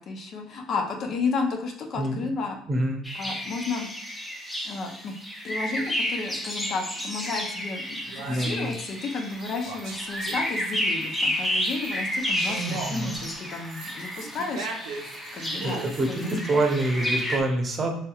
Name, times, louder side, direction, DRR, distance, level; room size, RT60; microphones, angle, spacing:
voice 1, 0.0-2.6 3.1-3.9 4.6-5.1 5.4-16.2, left 4 dB, 55° left, 3 dB, 0.6 m, -32 dB
voice 2, 2.7-3.0 8.3-8.7 12.5-13.2 15.6-18.0, right 2 dB, 40° right, 2 dB, 0.7 m, -26 dB
sound 1, 3.0-17.4, equal, 10° left, 0.7 m, -31 dB
sound 2, 7.5-7.6 8.1-8.8 9.3-10.7 11.0-17.2, right 4 dB, 80° right, 0.6 m, -40 dB
3.3 x 2.8 x 2.3 m, 0.71 s
supercardioid pair, 80°, 0 cm